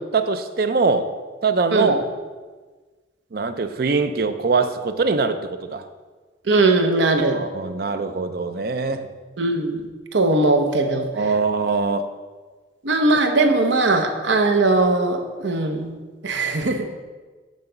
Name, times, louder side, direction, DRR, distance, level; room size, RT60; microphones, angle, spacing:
voice 1, 0.1-1.1 1.4-2.1 3.3-5.9 7.3-9.1 11.1-12.1, right 4 dB, 50° right, 10 dB, 0.5 m, -22 dB
voice 2, 6.5-7.4 9.4-9.8 10.1-11.1 12.8-15.9 16.2-16.9, right 2 dB, 75° right, 5 dB, 0.8 m, -19 dB
8.1 x 3.9 x 6.9 m, 1.4 s
head